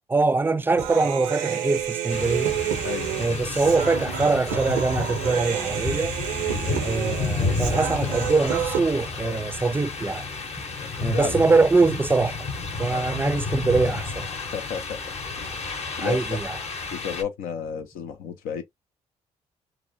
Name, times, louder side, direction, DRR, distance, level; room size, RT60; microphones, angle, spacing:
voice 1, 0.0-2.6 3.2-6.1 6.8-10.3 11.0-12.4 12.8-14.3 16.0-16.6, right 3 dB, 15° right, 0.4 m, -23 dB
Human voice, 0.8-8.8, right 10 dB, 90° right, 0.6 m, -29 dB
sound 1, 2.1-17.2, left 4 dB, 50° left, 0.8 m, -31 dB
voice 2, 10.8-11.4 12.9-13.2 14.5-15.0 15.3-16.4 16.9-18.6, left 7 dB, 85° left, 0.6 m, -33 dB
2.8 x 2.1 x 2.5 m
supercardioid pair, 55°, 14 cm